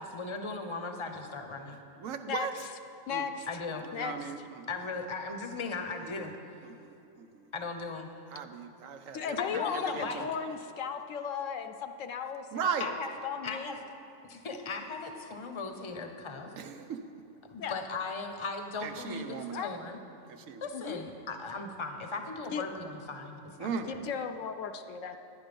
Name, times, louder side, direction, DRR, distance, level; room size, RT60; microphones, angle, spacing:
voice 1, 0.0-1.8 3.5-3.9 4.7-6.3 7.5-8.2 8.4-8.5 9.4-10.3 12.8-13.1 13.4-13.8 14.2-16.5 17.5-20.0 20.6-24.0, left 3 dB, 30° left, 5 dB, 0.7 m, -38 dB
voice 2, 2.0-2.5 3.1-3.2 4.0-4.6 6.0-6.3 6.8-7.4 8.3-9.6 9.9-10.3 12.5-12.9 16.6-17.0 18.8-19.6 20.3-20.6 23.6-23.9, right 6 dB, 80° right, 7 dB, 1.1 m, -37 dB
voice 3, 3.1-3.5 3.9-4.5 9.1-12.9 13.2-13.8 17.6-17.7 19.5-19.7 20.7-21.0 22.5-22.6 23.9-25.2, left 7 dB, 75° left, 8 dB, 0.9 m, -36 dB
10.5 x 10.0 x 5.2 m, 2.8 s
omnidirectional pair, 1.4 m